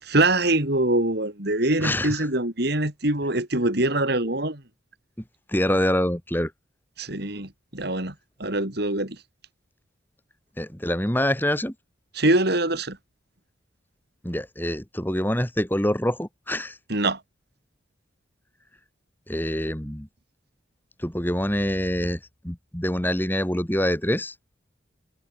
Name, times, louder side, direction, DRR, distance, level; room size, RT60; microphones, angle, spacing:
voice 1, 0.0-4.6 7.0-8.1 8.4-9.2 12.2-13.0 16.9-17.2, right 2 dB, 55° right, 3.8 m, -23 dB
voice 2, 1.8-2.2 5.5-6.5 10.6-11.7 14.2-16.8 19.3-20.1 21.0-24.3, left 1 dB, 10° left, 2.5 m, -25 dB
head